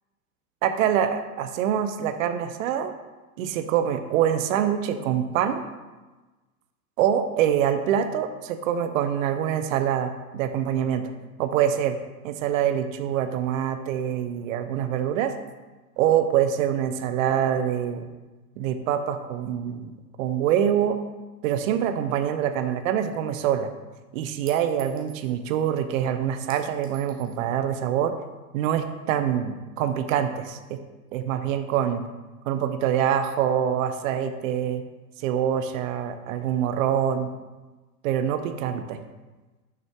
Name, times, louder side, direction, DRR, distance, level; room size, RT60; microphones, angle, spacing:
voice 1, 0.6-2.9 3.4-5.6 7.0-11.1 11.4-12.0 12.2-15.3 16.0-18.1 18.6-19.9 20.2-21.0 21.4-23.7 24.1-28.1 28.5-30.8 31.1-32.0 32.5-34.8 35.2-37.3 38.0-39.0, right 9 dB, 55° right, 9 dB, 0.8 m, -25 dB
Chink clink, 22.7-22.8 24.5-25.3 26.5-27.4, right 5 dB, 20° right, 1.1 m, -47 dB
6.2 x 5.8 x 3.6 m, 1.2 s
hypercardioid pair, 110°, 47 cm